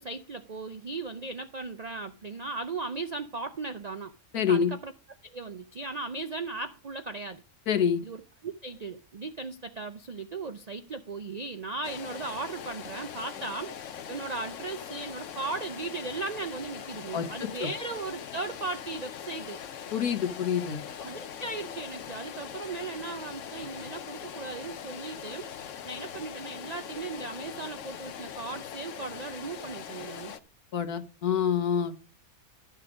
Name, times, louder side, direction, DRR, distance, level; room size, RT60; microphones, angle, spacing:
voice 1, 0.0-4.9 5.2-7.4 8.0-19.6 21.0-30.3, right 3 dB, 70° right, 0.4 m, -37 dB
voice 2, 4.3-4.7 7.7-8.0 17.1-17.7 19.9-20.8 30.7-32.1, left 7 dB, 85° left, 1.6 m, -27 dB
sound 1, 11.8-30.4, left 8 dB, 60° left, 1.0 m, -41 dB
12.0 x 6.5 x 4.9 m
omnidirectional pair, 1.6 m